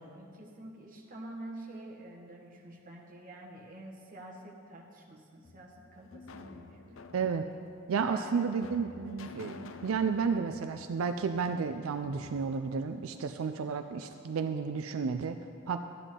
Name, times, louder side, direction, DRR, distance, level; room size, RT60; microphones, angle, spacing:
voice 1, 0.1-7.0 7.9-9.1, right 1 dB, 45° right, -1 dB, 1.4 m, -48 dB
sound 1, 5.4-13.6, left 4 dB, 70° left, 0.5 m, -51 dB
voice 2, 7.1-7.5 7.9-15.8, right 5 dB, 90° right, 8 dB, 0.4 m, -32 dB
13.5 x 9.9 x 3.8 m, 2.4 s
head